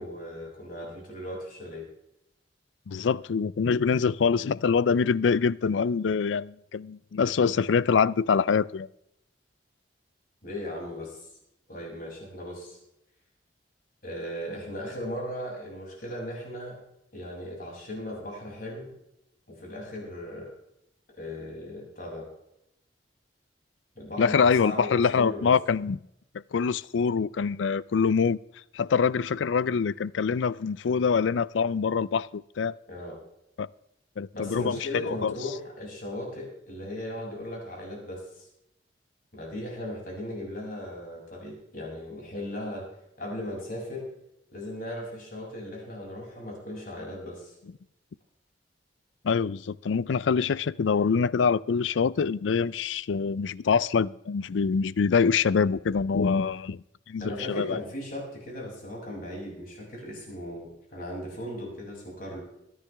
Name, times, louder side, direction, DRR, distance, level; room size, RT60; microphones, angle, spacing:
voice 1, 0.0-1.8 10.4-11.3 11.7-12.8 14.0-16.8 17.1-18.9 19.5-20.5 21.2-22.3 23.9-25.5 32.9-33.2 34.3-38.5 39.3-42.9 43.2-44.0 44.5-47.5 57.2-62.4, left 1 dB, 50° left, 6.6 m, -37 dB
voice 2, 2.9-8.9 24.2-26.0 26.5-28.4 28.7-32.7 33.6-33.7 34.2-35.3 49.2-57.8, left 5 dB, 90° left, 0.4 m, -25 dB
22.5 x 10.5 x 3.4 m
head